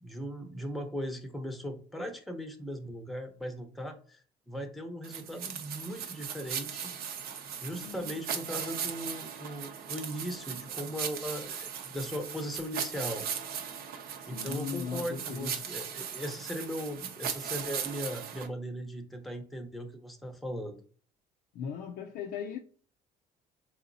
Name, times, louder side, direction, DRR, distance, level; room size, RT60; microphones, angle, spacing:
voice 1, 0.0-4.2 4.5-6.9 7.6-13.3 14.2-20.8, equal, ahead, 0.6 m, -38 dB
sound 1, 5.0-18.5, right 8 dB, 65° right, 0.6 m, -38 dB
voice 2, 7.7-8.2 14.2-15.5 21.5-22.6, left 7 dB, 70° left, 0.4 m, -38 dB
3.8 x 2.9 x 2.5 m
cardioid pair, 110°, 17 cm